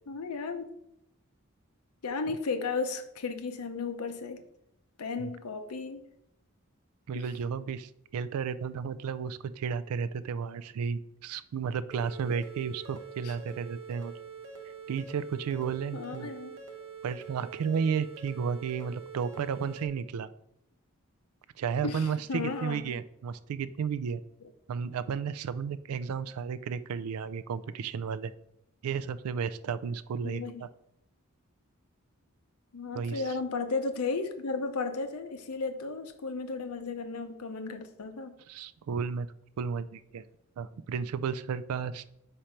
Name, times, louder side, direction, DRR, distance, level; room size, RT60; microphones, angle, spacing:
voice 1, 0.1-0.6 2.0-4.4 5.0-6.1 7.1-7.3 13.2-13.4 15.9-16.6 21.8-22.8 30.2-30.6 32.7-38.3, left 4 dB, 85° left, 8 dB, 0.7 m, -34 dB
voice 2, 7.1-14.1 14.9-16.3 17.0-20.3 21.6-24.2 24.7-28.3 28.8-30.7 32.9-33.4 38.5-39.3 39.6-40.2 40.6-42.1, right 6 dB, 85° right, 15 dB, 0.3 m, -33 dB
sound 1, 11.9-19.9, right 5 dB, 60° right, 0.9 m, -45 dB
4.5 x 4.3 x 5.1 m, 0.78 s
head